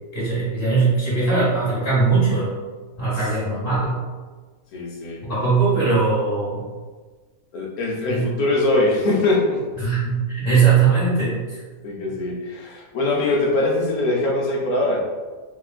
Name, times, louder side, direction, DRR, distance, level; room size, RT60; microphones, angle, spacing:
voice 1, 0.1-2.5 3.0-4.0 5.2-6.7 8.1-8.2 9.8-11.6, right 4 dB, 35° left, -8 dB, 1.4 m, -20 dB
voice 2, 4.7-5.2 7.5-9.6 11.8-15.0, left 2 dB, 70° left, -2 dB, 1.0 m, -22 dB
3.6 x 2.2 x 2.4 m, 1.4 s
omnidirectional pair, 1.7 m